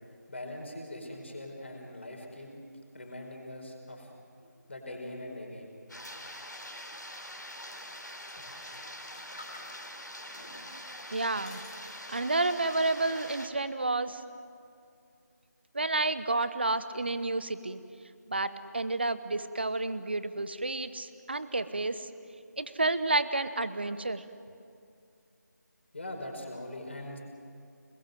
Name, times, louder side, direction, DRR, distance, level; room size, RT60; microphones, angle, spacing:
voice 1, 0.3-2.5 2.9-4.1 4.4-6.1 6.4-6.5 25.9-27.2, left 1 dB, 40° left, 2 dB, 4.7 m, -42 dB
sound 1, 5.9-13.5, equal, 80° left, 3.8 m, -44 dB
sound 2, 8.4-10.1 10.7-12.5 12.9-13.5, left 2 dB, 25° left, 2.9 m, -54 dB
voice 2, 11.1-11.6 12.1-14.2 15.7-17.8 18.3-22.1 22.6-24.2, right 2 dB, 35° right, 13 dB, 0.9 m, -30 dB
28.0 x 21.0 x 7.7 m, 2.4 s
figure-of-eight pair, 165°, 10 cm